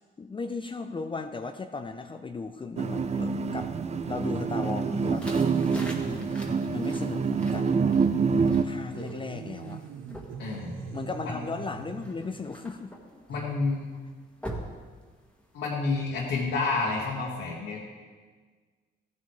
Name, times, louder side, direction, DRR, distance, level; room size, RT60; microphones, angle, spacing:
voice 1, 0.2-3.7 4.1-5.3 6.0-6.4 6.7-7.7 8.6-9.8 10.9-12.9, left 4 dB, 25° left, 7 dB, 0.5 m, -36 dB
sound 1, 2.8-8.6, right 5 dB, 35° right, 0.6 m, -26 dB
sound 2, 4.9-15.7, equal, 5° left, 1.8 m, -46 dB
sound 3, 8.9-12.4, right 6 dB, 75° right, 0.9 m, -42 dB
voice 2, 10.4-10.8 13.3-13.9 15.5-17.8, left 3 dB, 80° left, -5 dB, 2.1 m, -29 dB
14.5 x 9.6 x 3.2 m, 1.5 s
cardioid pair, 90°, 20 cm